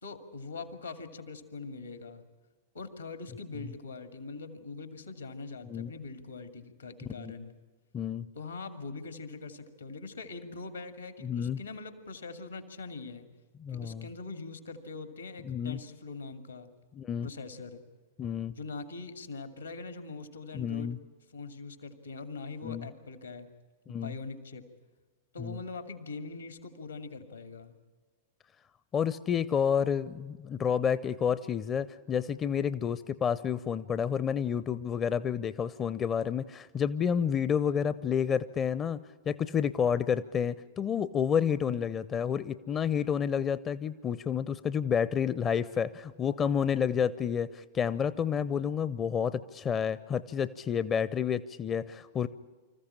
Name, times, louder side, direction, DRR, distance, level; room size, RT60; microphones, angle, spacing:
voice 1, 0.0-2.3 2.7-7.5 8.3-13.3 13.7-16.7 17.2-17.8 18.5-20.9 21.3-23.5 23.9-24.7 25.3-27.8 41.7-42.0, left 3 dB, 80° left, 9 dB, 2.3 m, -42 dB
voice 2, 7.0-7.3 7.9-8.2 11.2-11.6 13.6-14.1 15.4-15.8 16.9-17.3 18.2-18.5 20.5-21.0 22.6-22.9 23.9-24.1 25.4-25.6 28.9-39.0 39.3-52.3, left 7 dB, 25° left, 15 dB, 0.6 m, -30 dB
26.0 x 14.5 x 10.0 m, 1.3 s
figure-of-eight pair, 95°, 0 cm